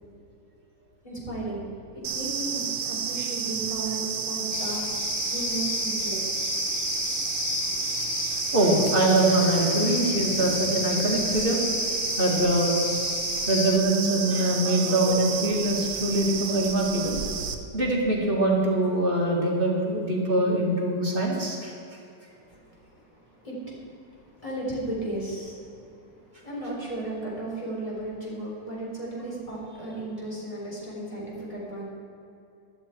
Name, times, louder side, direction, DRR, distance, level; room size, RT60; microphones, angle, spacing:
voice 1, 1.0-1.6 1.9-4.8 5.2-6.2 22.3-31.8, right 2 dB, 15° left, -5 dB, 4.0 m, -35 dB
sound 1, 2.0-17.5, right 6 dB, 80° right, 1.7 m, -31 dB
sound 2, 4.5-13.8, left 8 dB, 60° left, 0.8 m, -33 dB
voice 2, 8.5-11.6 12.2-12.7 13.4-17.2 17.7-21.7, right 1 dB, 30° right, -3 dB, 2.3 m, -23 dB
15.0 x 12.5 x 4.5 m, 2.7 s
omnidirectional pair, 2.0 m